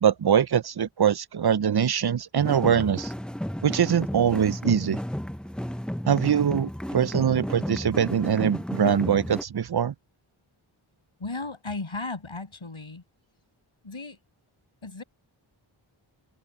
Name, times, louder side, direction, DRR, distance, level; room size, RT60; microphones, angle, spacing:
voice 1, 0.0-3.1 3.6-5.0 6.1-9.9, right 8 dB, 50° right, 0.6 m, -23 dB
sound 1, 2.4-9.4, equal, ahead, 0.7 m, -33 dB
voice 2, 11.2-13.0 13.8-14.2 14.8-15.0, left 3 dB, 70° left, 7.2 m, -35 dB
open air
wide cardioid pair, 50°, 49 cm